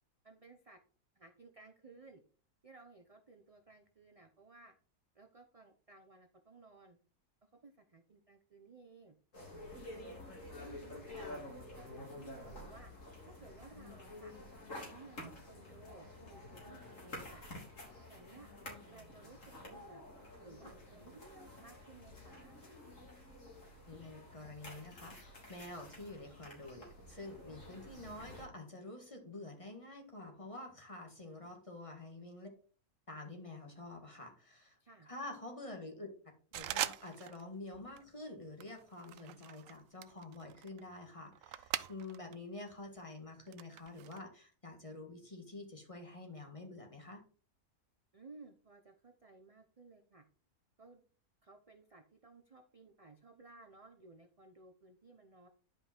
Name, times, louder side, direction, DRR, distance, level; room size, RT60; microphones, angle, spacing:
voice 1, 0.2-0.8 1.1-2.2 2.6-4.7 5.1-7.0 7.4-9.2 9.7-10.2 10.5-11.3 11.8-12.9 13.3-14.3 14.7-17.4 18.1-18.5 18.9-20.0 20.4-22.6 31.2-31.6 34.8-35.1 48.1-50.2 50.8-51.0 51.4-55.5, right 3 dB, 35° right, 5 dB, 0.6 m, -58 dB
sound 1, 9.3-28.5, left 1 dB, 55° left, 3.7 m, -50 dB
voice 2, 23.9-32.5 33.1-34.8 35.1-36.1 36.5-47.2, left 2 dB, 20° left, 2 dB, 1.9 m, -48 dB
sound 2, 36.5-37.5 37.7-38.1 38.6-42.4 42.7-44.2, right 12 dB, 70° right, 0.9 m, -42 dB
10.5 x 5.3 x 4.4 m, 0.41 s
omnidirectional pair, 1.6 m